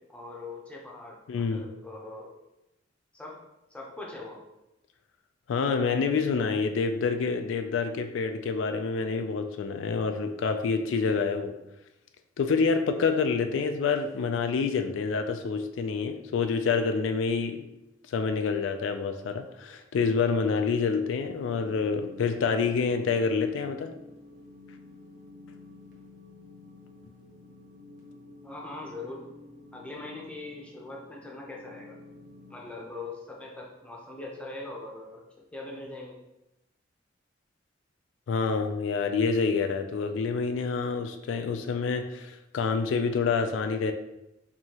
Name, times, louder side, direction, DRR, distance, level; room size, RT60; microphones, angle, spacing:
voice 1, 0.1-2.3 3.1-3.4 3.7-4.4 28.4-29.3 29.7-32.0 32.5-35.2 35.5-36.2, left 2 dB, 5° left, -2 dB, 0.7 m, -41 dB
voice 2, 1.3-1.6 5.5-11.6 12.4-17.6 18.1-23.9 38.3-43.9, left 5 dB, 85° left, 7 dB, 0.3 m, -27 dB
sound 1, 21.3-32.6, left 2 dB, 60° right, 1.0 m, -50 dB
4.7 x 2.7 x 2.8 m, 0.92 s
head